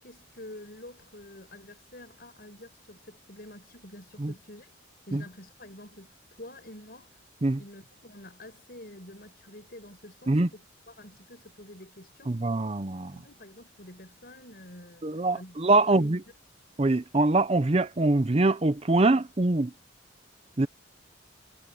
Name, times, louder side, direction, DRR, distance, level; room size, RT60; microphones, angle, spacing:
voice 1, 0.0-4.7 5.1-7.2 7.6-12.4 13.1-15.1 15.3-16.1, left 1 dB, 50° left, 5.6 m, -48 dB
voice 2, 12.3-13.1 15.0-16.2 16.8-19.7 20.6-20.7, right 2 dB, 30° right, 0.6 m, -23 dB
head